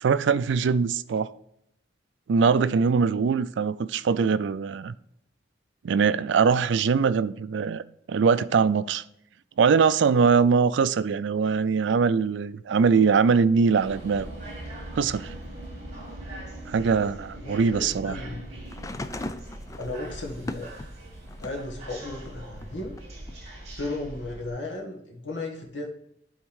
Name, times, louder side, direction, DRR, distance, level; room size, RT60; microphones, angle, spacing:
voice 1, 0.0-1.3 2.3-4.9 5.8-7.8 8.1-9.0 9.6-14.3 14.9-15.3 16.7-18.2, right 5 dB, 75° right, 0.4 m, -22 dB
sound 1, 13.8-18.9, right 1 dB, 60° left, 1.8 m, -49 dB
sound 2, 13.8-24.5, right 1 dB, 35° right, 2.0 m, -41 dB
voice 2, 17.4-18.5 19.8-20.7 21.4-23.0 23.8-25.9, left 2 dB, 80° left, 1.5 m, -35 dB
sound 3, 18.7-21.7 22.2-23.3 24.4-24.5, left 2 dB, 15° left, 0.3 m, -38 dB
8.8 x 3.6 x 4.7 m
head